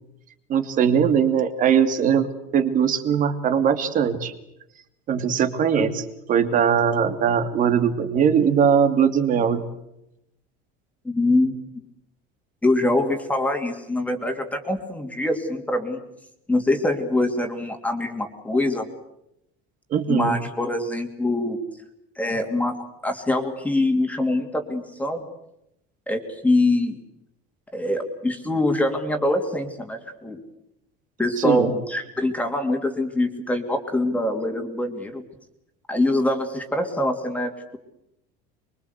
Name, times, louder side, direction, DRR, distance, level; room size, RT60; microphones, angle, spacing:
voice 1, 0.5-2.3 2.5-4.3 5.1-5.9 6.3-9.6 19.9-20.4 31.4-31.7, right 7 dB, 40° right, 9 dB, 2.7 m, -20 dB
voice 2, 11.0-11.5 12.6-16.0 16.5-18.9 20.1-21.6 22.2-22.7 23.0-25.2 26.1-27.0 27.7-30.4 31.2-35.2 35.9-37.8, left 1 dB, 5° left, 4 dB, 2.7 m, -24 dB
25.0 x 23.5 x 8.2 m, 0.83 s
cardioid pair, 150°, 21 cm